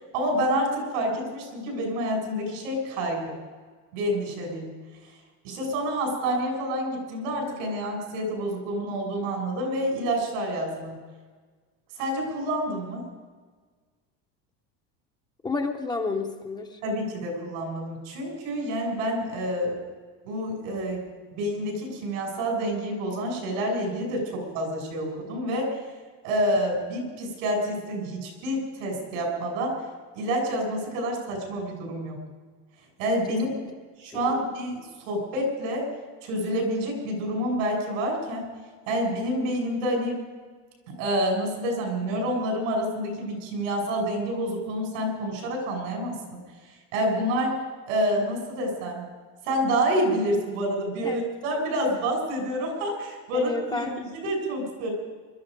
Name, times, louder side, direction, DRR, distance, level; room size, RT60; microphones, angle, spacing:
voice 1, 0.1-3.3 3.9-4.7 5.4-11.0 12.0-13.0 16.8-19.7 20.2-21.0 21.3-25.8 26.2-29.8 30.1-32.2 33.0-33.5 34.0-35.9 36.2-38.4 38.9-40.2 40.9-46.2 46.9-47.6 47.9-49.1 49.4-54.9, equal, 90° right, 1 dB, 6.4 m, -28 dB
voice 2, 15.4-16.8 34.2-34.3 51.0-51.2 53.3-54.3, left 3 dB, 10° left, 4 dB, 0.6 m, -31 dB
21.5 x 13.0 x 5.1 m, 1.5 s
cardioid pair, 175°, 37 cm